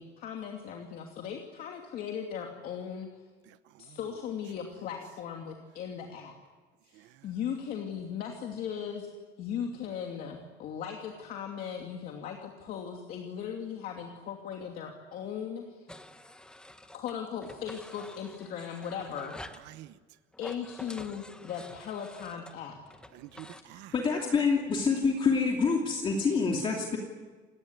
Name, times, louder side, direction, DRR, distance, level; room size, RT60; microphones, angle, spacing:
voice 1, 0.0-3.1 3.8-6.3 6.8-9.1 9.4-15.9 16.9-19.4 20.4-22.8, left 8 dB, 50° left, 2 dB, 2.8 m, -38 dB
voice 2, 3.5-4.0 6.9-7.3 19.6-20.0 23.1-23.9, right 15 dB, 70° right, 13 dB, 1.0 m, -49 dB
sound 1, 15.9-17.1 17.4-19.7 20.3-23.6, left 1 dB, 5° left, 1.1 m, -48 dB
voice 3, 23.6-27.0, left 5 dB, 25° left, 0 dB, 2.7 m, -27 dB
28.0 x 20.5 x 9.7 m, 1.4 s
cardioid pair, 170°, 19 cm